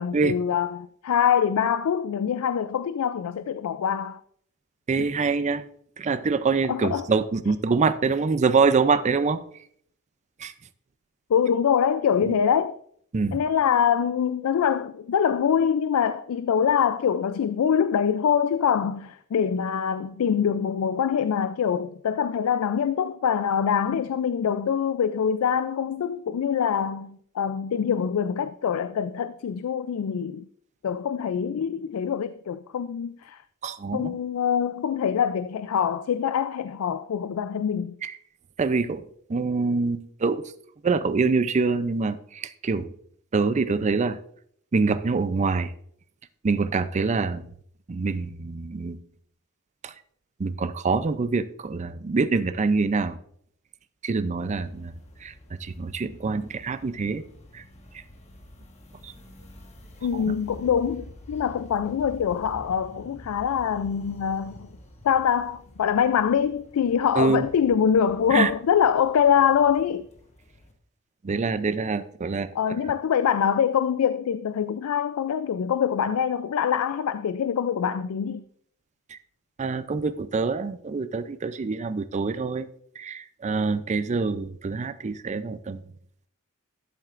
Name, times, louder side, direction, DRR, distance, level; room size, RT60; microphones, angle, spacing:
voice 1, 0.0-4.2 5.0-5.1 6.7-7.1 11.3-12.7 13.3-30.5 30.8-33.4 33.9-37.9 60.0-64.7 65.0-70.1 72.5-78.4, left 8 dB, 80° left, 0.4 m, -24 dB
voice 2, 4.9-5.6 6.0-9.4 10.4-10.5 12.3-12.4 13.1-13.4 33.6-34.2 38.0-38.1 38.6-39.0 39.3-40.4 40.8-42.9 43.3-44.2 44.7-45.7 46.4-47.4 47.9-49.0 49.8-49.9 50.4-53.2 54.0-54.9 55.2-55.3 55.6-57.2 57.5-57.6 59.0-59.1 60.1-60.2 67.2-67.5 68.3-68.5 71.2-72.8 79.1-79.2 79.6-82.7 83.0-85.8, right 4 dB, 35° right, 0.4 m, -25 dB
sound 1, 54.4-70.7, left 1 dB, 30° left, 1.3 m, -48 dB
12.5 x 7.5 x 2.5 m
head